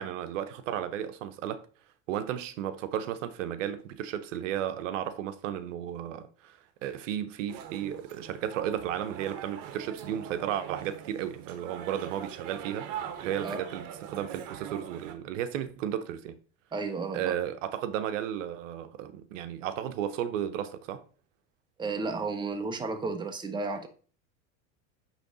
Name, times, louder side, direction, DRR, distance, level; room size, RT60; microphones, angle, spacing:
voice 1, 0.0-1.7 2.1-12.9 13.2-16.4 17.1-21.0, right 10 dB, 85° right, 0.7 m, -34 dB
sound 1, 7.5-15.1, right 9 dB, 55° right, 1.0 m, -42 dB
voice 2, 16.7-17.4 21.8-23.9, right 4 dB, 10° right, 0.7 m, -33 dB
8.1 x 3.2 x 3.8 m
supercardioid pair, 110°, 37 cm